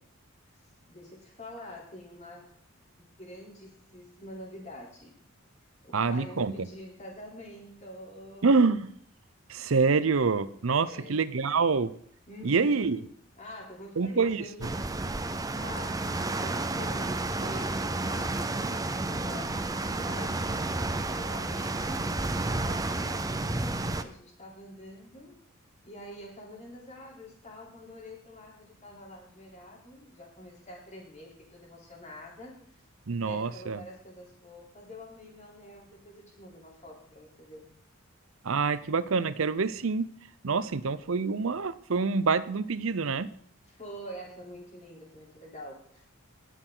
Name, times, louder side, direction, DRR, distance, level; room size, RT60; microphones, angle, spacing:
voice 1, 0.9-2.6 3.0-5.2 5.8-8.6 10.8-11.6 12.3-13.0 13.4-15.0 15.6-16.1 16.4-20.4 21.1-25.4 25.8-32.7 33.2-37.7 43.7-46.1, left 1 dB, 35° left, -3 dB, 3.6 m, -46 dB
voice 2, 5.9-6.7 8.4-8.9 9.5-11.9 12.4-13.0 14.0-14.7 33.1-33.8 38.4-40.1 40.4-43.3, right 4 dB, 70° right, 15 dB, 0.6 m, -26 dB
sound 1, 14.6-24.0, right 2 dB, 15° right, 0.6 m, -31 dB
19.0 x 6.4 x 3.9 m, 0.62 s
head